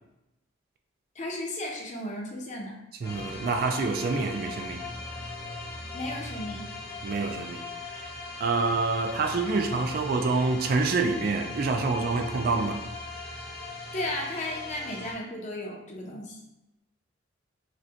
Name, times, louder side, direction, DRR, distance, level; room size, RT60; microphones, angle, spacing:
voice 1, 1.1-2.8 5.9-6.6 13.9-16.4, left 1 dB, 40° left, 0.6 m, -34 dB
sound 1, 3.0-15.1, left 3 dB, 55° left, 1.0 m, -39 dB
voice 2, 3.0-4.8 7.0-7.7 8.0-8.1 8.4-12.8, right 3 dB, 50° right, 0.3 m, -27 dB
4.9 x 2.2 x 2.8 m
head